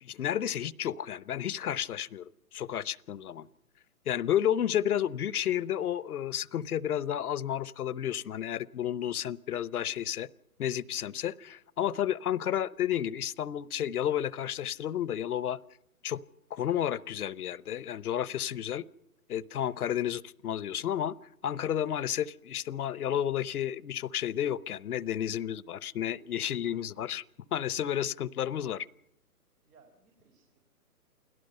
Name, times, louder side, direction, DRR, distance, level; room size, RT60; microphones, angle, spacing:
voice 1, 0.0-3.5 4.1-10.3 10.6-15.6 16.0-16.2 16.5-18.8 19.3-21.1 21.4-27.2 27.5-28.9, left 10 dB, 75° left, 21 dB, 0.8 m, -31 dB
voice 2, 26.4-27.1 29.6-30.6, right 4 dB, 85° right, 3 dB, 4.7 m, -63 dB
29.0 x 18.0 x 5.5 m, 0.78 s
hypercardioid pair, 155°, 46 cm